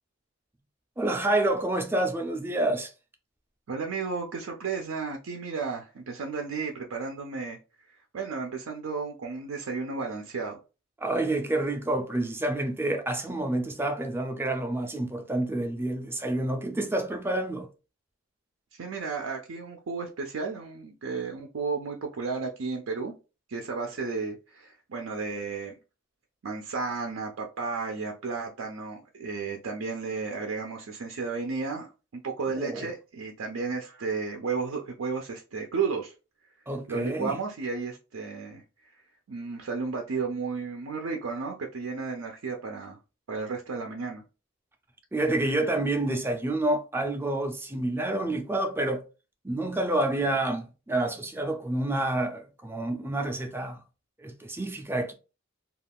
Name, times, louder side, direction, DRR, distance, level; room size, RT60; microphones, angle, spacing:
voice 1, 1.0-2.9 11.0-17.7 32.6-32.9 36.7-37.3 45.1-49.0 49.4-53.8 54.2-55.1, right 1 dB, 10° right, 0.4 m, -28 dB
voice 2, 3.7-10.6 18.7-23.1 23.5-25.8 26.4-31.9 32.1-36.1 36.9-39.0 39.3-43.0 43.3-44.2, right 4 dB, 75° right, 0.5 m, -33 dB
2.3 x 2.3 x 3.3 m
head